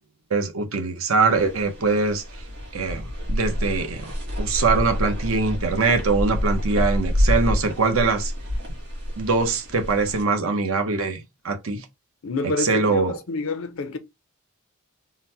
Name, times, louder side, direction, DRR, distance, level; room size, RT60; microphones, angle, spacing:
voice 1, 0.3-2.4 2.7-8.3 9.2-11.8 12.6-13.2, right 4 dB, 65° right, 0.7 m, -23 dB
sound 1, 1.3-10.2, equal, 50° right, 1.9 m, -27 dB
voice 2, 12.2-14.0, left 3 dB, 65° left, 0.5 m, -28 dB
3.8 x 2.1 x 2.7 m
head